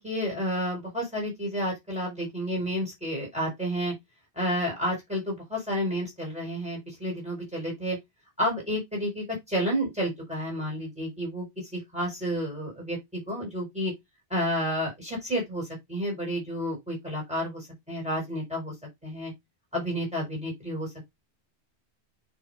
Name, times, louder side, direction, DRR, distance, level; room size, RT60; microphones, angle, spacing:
voice 1, 0.0-3.9 4.3-8.0 8.4-11.4 11.7-13.9 14.3-18.7 19.0-19.3 19.7-21.1, equal, 5° right, 4.8 m, -30 dB
9.3 x 4.2 x 2.5 m
omnidirectional pair, 1.1 m